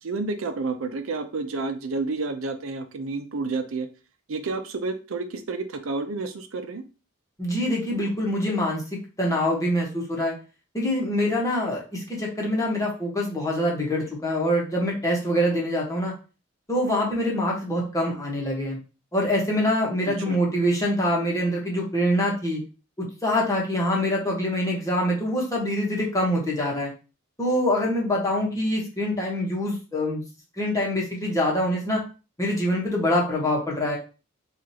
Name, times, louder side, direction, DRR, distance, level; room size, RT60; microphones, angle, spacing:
voice 1, 0.0-3.9 4.3-6.8 20.1-20.4, right 3 dB, 75° right, 7 dB, 0.5 m, -30 dB
voice 2, 7.4-8.8 9.2-10.3 10.7-16.1 16.7-18.8 19.1-22.6 23.0-26.9 27.4-30.2 30.6-32.0 32.4-34.0, left 1 dB, 15° left, -3 dB, 1.2 m, -25 dB
4.8 x 2.5 x 2.8 m, 0.33 s
head